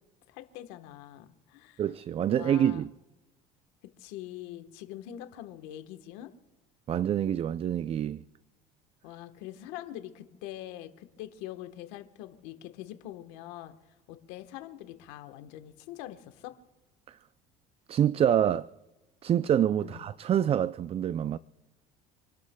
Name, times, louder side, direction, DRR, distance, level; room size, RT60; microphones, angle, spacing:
voice 1, 0.3-1.8 2.3-2.9 4.0-6.3 9.0-16.6 19.8-20.1, left 13 dB, 80° left, 1.2 m, -44 dB
voice 2, 1.8-2.9 6.9-8.2 17.1-17.2 17.9-18.7 19.2-21.4, right 10 dB, 35° right, 0.4 m, -26 dB
28.0 x 11.5 x 2.3 m
supercardioid pair, 95°, 18 cm